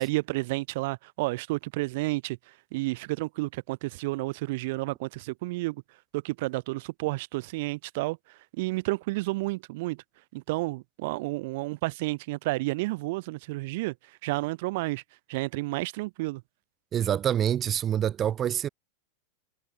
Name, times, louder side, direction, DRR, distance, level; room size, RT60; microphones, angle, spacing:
voice 1, 0.0-5.8 6.1-10.0 10.3-13.9 14.2-15.0 15.3-16.4, right 22 dB, 50° right, 4.6 m, -31 dB
voice 2, 16.9-18.7, right 10 dB, 25° right, 1.3 m, -26 dB
figure-of-eight pair, 90°, 0 cm